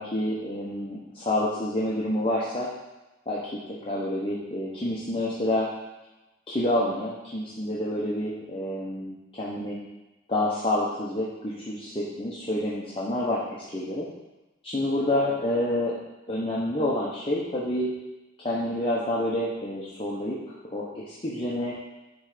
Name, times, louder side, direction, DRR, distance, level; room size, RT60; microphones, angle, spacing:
voice 1, 0.0-2.7 3.3-3.4 3.9-5.7 6.5-9.8 10.3-14.0 14.6-16.0 16.3-17.9 18.4-20.4 20.7-21.7, left 1 dB, 30° left, -6 dB, 0.9 m, -28 dB
9.6 x 3.3 x 5.0 m, 1.0 s
head